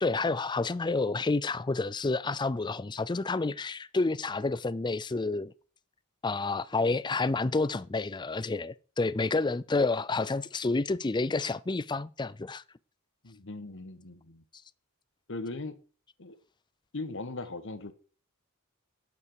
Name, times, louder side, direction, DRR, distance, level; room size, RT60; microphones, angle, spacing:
voice 1, 0.0-5.5 6.2-12.6, left 3 dB, 20° left, 0.4 m, -29 dB
voice 2, 13.2-14.4 15.3-15.8 16.2-16.4 16.9-17.9, left 2 dB, 60° left, 1.4 m, -39 dB
12.0 x 8.5 x 4.8 m
head